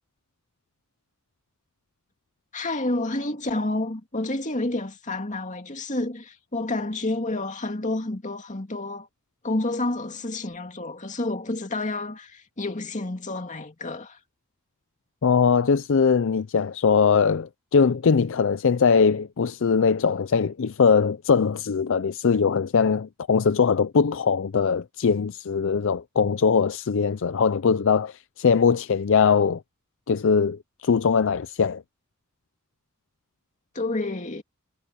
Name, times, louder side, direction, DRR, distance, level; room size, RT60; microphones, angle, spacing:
voice 1, 2.5-9.1 9.4-14.2 33.7-34.4, left 2 dB, 35° left, 2.3 m, -29 dB
voice 2, 15.2-29.6 30.1-31.8, left 5 dB, 60° left, 0.5 m, -21 dB
head